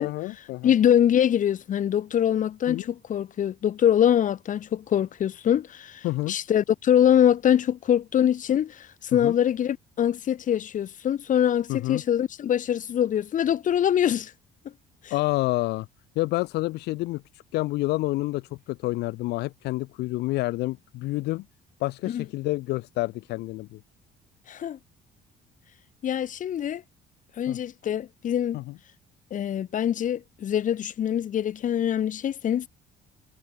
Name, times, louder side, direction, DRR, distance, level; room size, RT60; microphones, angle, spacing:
voice 1, 0.0-0.7 2.7-2.8 6.0-6.4 9.2-9.3 11.7-12.0 15.1-15.9 16.2-17.2 17.5-21.4 21.8-23.8 27.5-27.6 28.5-28.7, left 19 dB, 80° left, 0.5 m, -28 dB
voice 2, 0.6-14.3 15.0-15.1 22.1-22.2 24.5-24.8 26.0-26.8 27.4-28.6 29.3-32.7, left 10 dB, 50° left, 1.7 m, -24 dB
cardioid pair, 110°, 17 cm